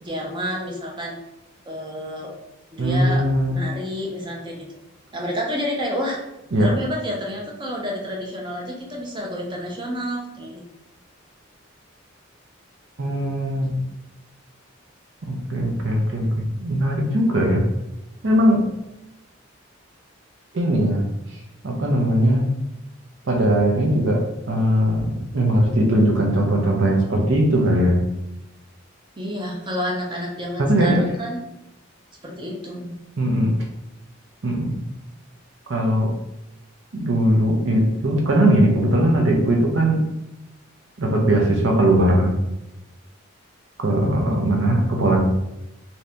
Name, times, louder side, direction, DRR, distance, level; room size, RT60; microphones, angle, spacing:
voice 1, 0.0-1.2 1.7-2.4 2.7-3.2 3.5-4.7 5.1-6.2 6.6-10.6 13.7-13.9 29.2-31.4 32.2-32.9 44.2-44.6, equal, 25° right, -1 dB, 0.6 m, -29 dB
voice 2, 2.8-3.6 6.5-6.7 13.0-13.7 15.2-17.6 18.2-18.6 20.5-21.1 21.6-22.5 23.3-28.0 30.6-31.0 33.2-33.6 34.4-34.8 35.7-36.1 36.9-40.0 41.0-42.4 43.8-45.2, right 1 dB, 65° right, 0 dB, 0.6 m, -19 dB
2.7 x 2.6 x 3.3 m, 0.91 s
head